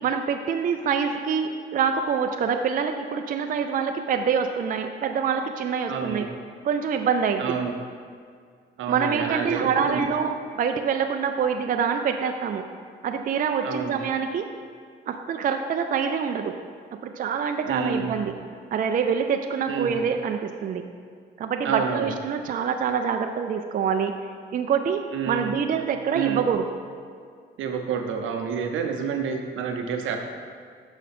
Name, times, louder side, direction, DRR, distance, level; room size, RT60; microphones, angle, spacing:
voice 1, 0.0-6.3 6.6-7.6 8.9-12.6 13.0-14.5 15.1-16.6 17.0-18.3 18.7-20.8 21.4-24.1 24.5-25.0 25.3-26.6, right 6 dB, 45° right, 5 dB, 0.4 m, -25 dB
voice 2, 5.9-6.3 7.4-7.7 8.8-10.0 13.6-14.0 17.7-18.2 19.7-20.0 21.6-22.1 25.1-25.6 26.1-26.4 27.6-30.3, right 6 dB, 80° right, 4 dB, 0.7 m, -29 dB
6.6 x 4.9 x 4.2 m, 2.1 s
cardioid pair, 90°, 20 cm